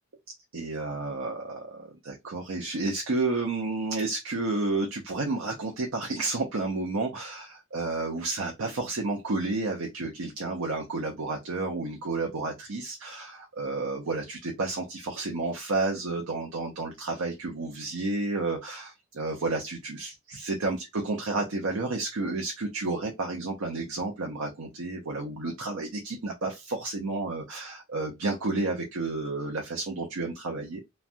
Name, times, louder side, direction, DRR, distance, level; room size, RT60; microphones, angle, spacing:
voice 1, 0.5-30.8, right 3 dB, 85° right, 0.6 m, -31 dB
3.1 x 2.2 x 2.5 m
head